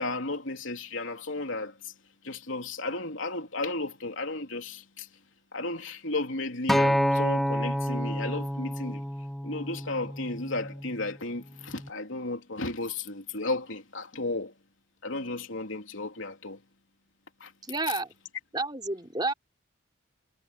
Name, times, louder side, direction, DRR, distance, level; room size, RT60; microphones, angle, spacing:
voice 1, 0.0-1.9 2.2-5.1 5.5-9.0 9.4-14.5 15.0-16.6 17.4-17.5, left 2 dB, 85° left, 3.3 m, -34 dB
Acoustic guitar, 6.7-11.0 11.8-11.9, equal, ahead, 0.6 m, -28 dB
voice 2, 17.6-18.1 18.5-19.3, right 2 dB, 20° right, 3.5 m, -30 dB
head